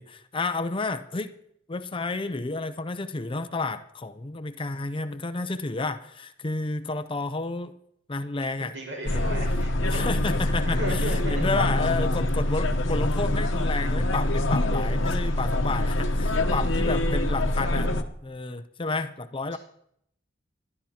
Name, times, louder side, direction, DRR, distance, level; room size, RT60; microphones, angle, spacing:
voice 1, 0.0-1.3 1.7-7.7 8.1-8.7 9.0-9.4 9.8-17.9 18.2-19.6, left 3 dB, 30° left, 10 dB, 0.6 m, -31 dB
voice 2, 8.6-10.1 10.7-11.5 19.5-19.6, equal, 75° right, 1 dB, 5.7 m, -35 dB
sound 1, 9.1-18.0, left 1 dB, 80° left, 1.0 m, -25 dB
20.5 x 12.5 x 2.9 m, 0.72 s
head